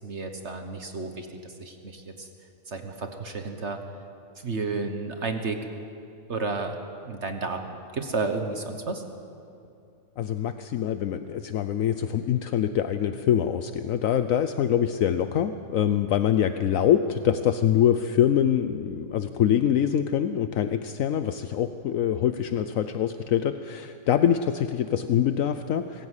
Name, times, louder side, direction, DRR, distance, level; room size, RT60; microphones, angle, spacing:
voice 1, 0.0-2.3 2.7-3.8 4.4-5.7 6.3-9.0, right 3 dB, 55° right, 6 dB, 1.5 m, -32 dB
voice 2, 10.2-26.1, left 9 dB, 70° left, 10 dB, 1.0 m, -24 dB
24.5 x 15.0 x 8.2 m, 2.6 s
omnidirectional pair, 1.5 m